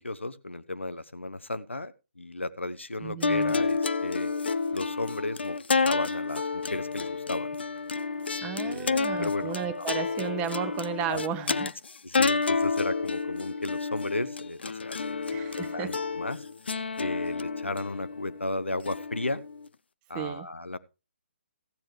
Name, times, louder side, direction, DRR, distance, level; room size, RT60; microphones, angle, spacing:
voice 1, 0.0-4.3 4.7-7.5 8.6-9.9 11.1-11.2 12.0-16.4 17.0-19.4 20.1-20.8, left 2 dB, 75° left, 14 dB, 0.9 m, -35 dB
voice 2, 3.0-3.5 8.4-11.7 15.3-15.9 20.1-20.5, right 8 dB, 15° right, 10 dB, 0.8 m, -34 dB
sound 1, 3.2-19.7, left 4 dB, 60° left, 0.5 m, -30 dB
15.0 x 8.7 x 3.3 m, 0.30 s
figure-of-eight pair, 140°, 6 cm